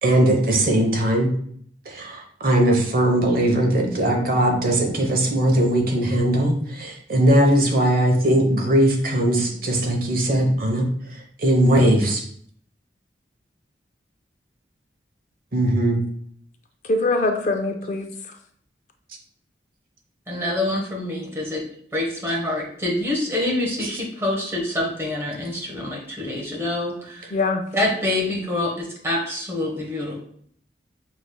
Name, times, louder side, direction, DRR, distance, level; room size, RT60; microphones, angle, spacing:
voice 1, 0.0-1.3 1.9-10.9 11.4-12.2 15.5-16.0, right 1 dB, 55° right, 2 dB, 0.8 m, -19 dB
voice 2, 16.8-18.3 27.3-27.6, left 2 dB, 45° left, 5 dB, 0.4 m, -23 dB
voice 3, 20.3-21.6 21.9-27.3 27.7-30.2, left 1 dB, 15° right, -2 dB, 1.0 m, -26 dB
6.1 x 3.3 x 2.2 m, 0.62 s
head